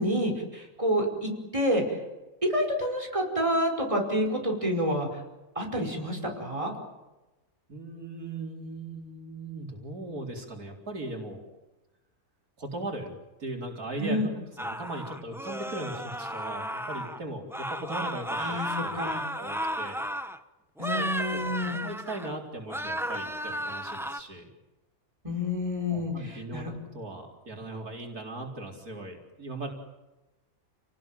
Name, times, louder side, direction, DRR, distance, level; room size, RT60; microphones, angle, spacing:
voice 1, 0.0-2.0 2.5-5.1 5.6-6.7 14.0-14.3 18.4-19.2 20.8-21.8 25.2-26.7, equal, 20° right, 1 dB, 5.3 m, -28 dB
voice 2, 7.7-11.4 12.6-13.1 13.4-19.0 19.3-20.0 20.8-21.5 21.8-24.5 25.9-29.7, right 2 dB, 85° right, 1 dB, 4.6 m, -38 dB
sound 1, 14.6-17.2 17.5-20.4 20.8-22.4 22.7-24.2, equal, ahead, 0.9 m, -34 dB
30.0 x 19.0 x 9.2 m, 1.1 s
omnidirectional pair, 1.5 m